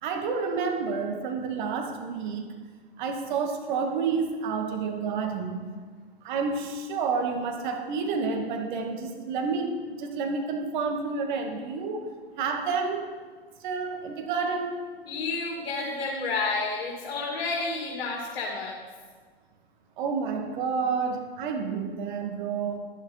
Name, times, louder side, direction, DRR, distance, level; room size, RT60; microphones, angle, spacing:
voice 1, 0.0-2.5 3.0-5.7 6.2-12.1 12.4-13.0 13.6-14.8 20.0-22.8, right 5 dB, 50° right, 3 dB, 2.1 m, -29 dB
voice 2, 15.1-18.8, left 3 dB, 65° left, -1 dB, 2.4 m, -30 dB
12.0 x 12.0 x 4.3 m, 1.5 s
hypercardioid pair, 110°, 30 cm